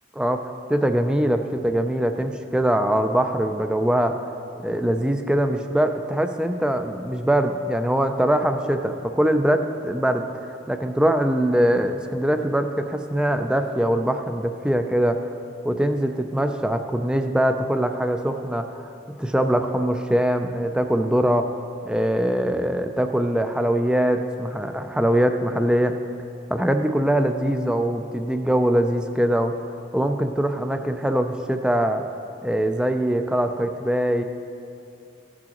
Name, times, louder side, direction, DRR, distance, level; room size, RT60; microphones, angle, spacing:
voice 1, 0.7-4.2 4.6-15.3 15.6-18.9 19.2-21.6 21.8-26.0 26.5-29.6 29.9-32.0 32.4-34.2, right 1 dB, 5° right, 6 dB, 0.3 m, -22 dB
15.0 x 6.2 x 3.0 m, 2.5 s
head